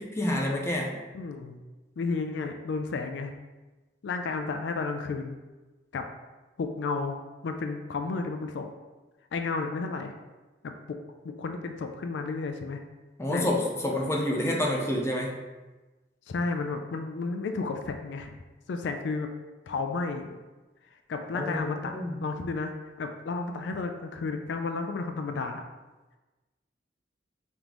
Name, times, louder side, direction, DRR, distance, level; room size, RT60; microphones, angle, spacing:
voice 1, 0.0-1.0 13.2-15.3 21.3-22.1, left 1 dB, 15° left, -2 dB, 0.5 m, -28 dB
voice 2, 1.1-1.6 2.0-3.3 4.0-5.4 5.9-6.1 6.6-7.2 7.4-8.7 9.3-10.1 10.6-11.0 11.2-12.8 13.3-13.5 16.3-18.3 18.7-19.3 19.7-20.4 21.1-25.6, left 4 dB, 80° left, 6 dB, 0.4 m, -32 dB
3.7 x 3.6 x 3.0 m, 1.2 s
head